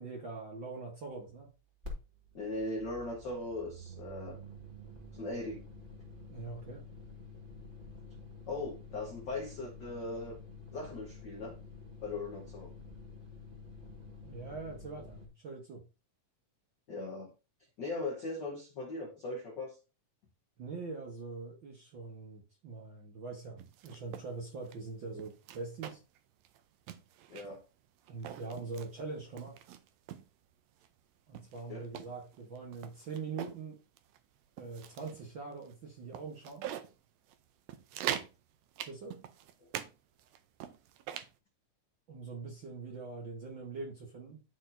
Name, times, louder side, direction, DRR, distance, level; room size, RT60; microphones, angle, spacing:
voice 1, 0.0-1.5 6.3-6.8 14.2-15.8 20.6-26.0 28.1-29.6 31.3-33.8 34.6-36.6 38.8-39.2 42.1-44.4, right 4 dB, 55° right, 1.3 m, -43 dB
sound 1, 1.8-2.0 2.2-15.3, left 2 dB, 25° right, 1.3 m, -49 dB
voice 2, 2.3-4.4 5.1-5.6 8.5-10.4 10.7-11.6 12.0-12.7 16.9-17.3 17.8-19.8 27.3-27.6 31.7-31.9 39.6-39.7, left 2 dB, 75° left, 1.0 m, -39 dB
sound 2, 23.6-24.3 24.6-24.8 25.2-26.2 26.5-26.6 26.9-27.6 28.1-28.9 29.4-30.3 30.8-30.9 31.3-33.6 34.0-34.2 34.6-35.2 35.7-35.8 36.1-36.9 37.3-37.4 37.7-38.3 38.8-39.9 40.2-41.3, right 10 dB, 80° right, 1.5 m, -42 dB
12.0 x 4.2 x 2.6 m
omnidirectional pair, 3.6 m